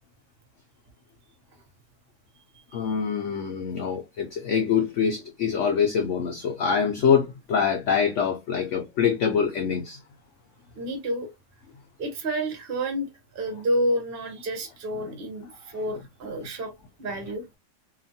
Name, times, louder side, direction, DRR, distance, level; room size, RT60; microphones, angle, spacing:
voice 1, 2.7-10.0, left 7 dB, 80° left, 0.6 m, -24 dB
voice 2, 10.8-11.3 12.0-16.7 17.0-17.4, right 1 dB, 55° right, 0.6 m, -29 dB
2.8 x 2.4 x 2.6 m
omnidirectional pair, 1.8 m